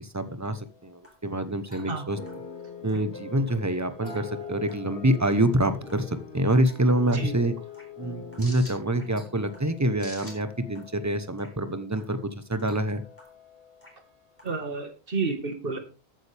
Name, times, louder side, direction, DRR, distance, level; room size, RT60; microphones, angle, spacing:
voice 1, 0.0-2.2 2.8-7.5 8.0-12.2 12.5-13.0, right 1 dB, 15° right, 11 dB, 0.9 m, -26 dB
sound 1, 0.6-14.9, left 3 dB, 10° left, 3.9 m, -51 dB
sound 2, 2.1-10.7, left 5 dB, 80° left, 3.9 m, -43 dB
voice 2, 14.4-15.8, right 4 dB, 55° right, 6 dB, 1.9 m, -30 dB
14.0 x 8.8 x 3.5 m, 0.34 s
omnidirectional pair, 1.1 m